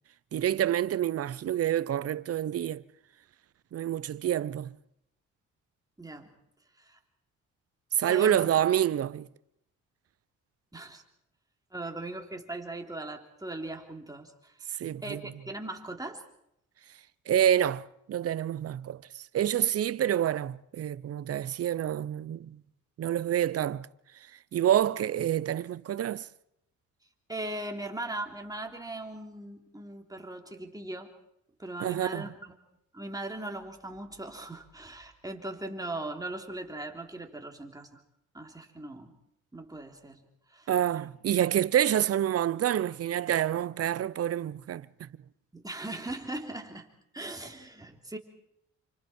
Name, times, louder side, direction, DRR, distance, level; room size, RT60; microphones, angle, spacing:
voice 1, 0.3-2.8 3.7-4.7 8.0-9.3 14.8-15.2 17.3-19.0 19.3-22.6 23.0-23.9 24.5-26.3 31.8-32.3 40.7-45.1, right 11 dB, 50° right, 0.8 m, -27 dB
voice 2, 6.0-6.4 6.8-7.0 8.1-8.5 10.7-11.0 11.7-16.2 27.3-31.1 31.6-32.5 32.9-38.0 38.3-39.1 39.5-40.2 40.5-40.7 45.5-46.9 47.1-48.2, right 2 dB, 10° right, 3.3 m, -39 dB
29.0 x 25.5 x 4.4 m
cardioid pair, 90°, 30 cm